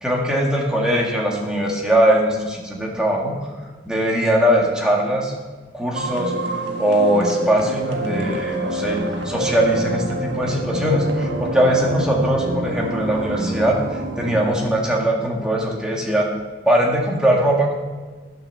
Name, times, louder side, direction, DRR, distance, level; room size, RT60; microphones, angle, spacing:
voice 1, 0.0-3.3 3.9-5.3 5.7-9.0 9.2-16.3 16.7-17.7, equal, 5° right, -2 dB, 1.8 m, -20 dB
sound 1, 5.9-14.6, right 2 dB, 65° right, 1.5 m, -27 dB
13.0 x 6.3 x 6.9 m, 1.3 s
head